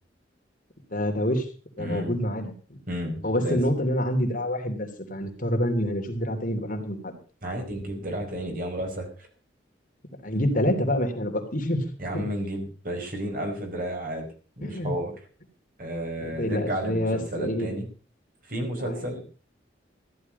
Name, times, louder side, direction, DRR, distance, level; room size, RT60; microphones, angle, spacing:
voice 1, 0.9-1.5 1.8-2.8 3.2-7.2 10.2-12.2 14.6-14.9 16.2-17.7 18.8-19.2, equal, 45° left, 3 dB, 3.0 m, -27 dB
voice 2, 1.8-2.2 2.9-3.6 7.4-9.1 12.0-14.3 14.6-15.1 15.8-17.9 18.5-19.2, equal, 50° right, 3 dB, 5.0 m, -32 dB
15.0 x 11.5 x 5.4 m, 0.37 s
head